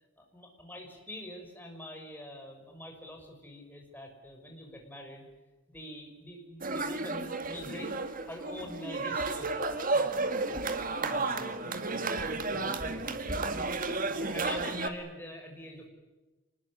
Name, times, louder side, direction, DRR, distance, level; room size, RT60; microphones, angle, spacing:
voice 1, 0.2-5.3 5.7-8.0 8.2-9.6 14.0-15.9, left 1 dB, 10° left, 2 dB, 5.9 m, -45 dB
sound 1, 6.6-14.9, right 3 dB, 45° right, 2.1 m, -32 dB
voice 2, 11.1-13.6, left 1 dB, 30° left, 5 dB, 2.5 m, -48 dB
26.5 x 21.0 x 9.9 m, 1.2 s
head